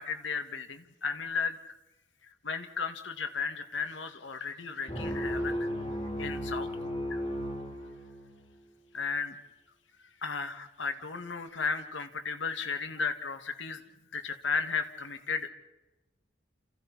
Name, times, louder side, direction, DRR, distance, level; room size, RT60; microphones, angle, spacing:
voice 1, 0.0-1.6 2.4-5.7 6.2-6.7 7.1-7.2 8.9-9.3 10.2-13.8 14.1-15.5, left 5 dB, 85° left, 7 dB, 2.2 m, -34 dB
sound 1, 4.9-8.5, equal, 35° left, 5.4 m, -34 dB
29.0 x 28.5 x 4.3 m, 1.0 s
head